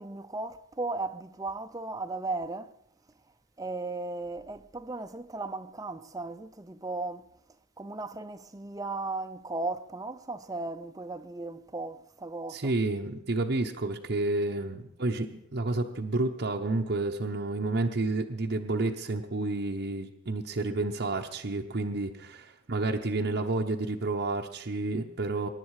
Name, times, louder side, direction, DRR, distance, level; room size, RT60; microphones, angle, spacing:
voice 1, 0.0-2.7 3.6-7.3 7.8-12.7, right 3 dB, 15° right, 0.5 m, -36 dB
voice 2, 12.5-25.5, right 2 dB, 55° right, 0.9 m, -30 dB
23.0 x 10.5 x 4.9 m
head